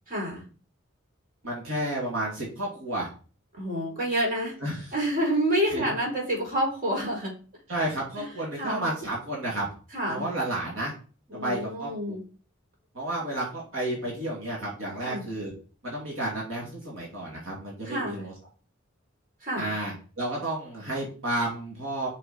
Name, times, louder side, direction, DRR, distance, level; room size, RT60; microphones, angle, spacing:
voice 1, 0.1-0.4 3.6-4.5 4.9-7.3 8.2-8.3 8.6-8.8 9.9-10.3 11.3-12.2 15.0-15.2 17.8-18.3 19.4-19.7, right 1 dB, 45° right, -2 dB, 4.3 m, -28 dB
voice 2, 1.4-3.1 4.6-4.9 5.7-5.8 7.7-9.7 10.1-10.9 11.3-12.1 12.9-15.5 15.8-18.3 19.6-22.1, right 1 dB, 75° right, -3 dB, 2.9 m, -31 dB
6.5 x 6.3 x 4.5 m, 0.38 s
head